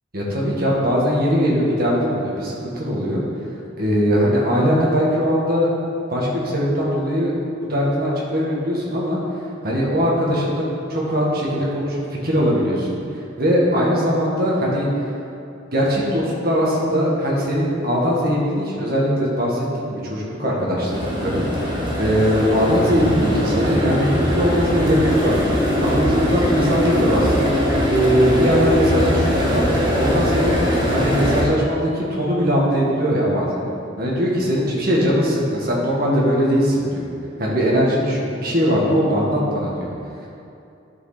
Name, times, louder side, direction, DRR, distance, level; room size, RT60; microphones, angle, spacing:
voice 1, 0.1-3.2 3.8-5.7 6.1-7.3 7.6-9.2 9.6-10.6 10.9-13.0 13.4-14.9 15.7-25.5 25.8-27.5 27.9-30.6 30.9-33.6 34.0-37.1 37.4-39.9, equal, 50° right, -4 dB, 1.9 m, -20 dB
sound 1, 20.9-31.4, equal, 25° right, 1.5 m, -21 dB
11.0 x 6.2 x 4.3 m, 2.7 s
head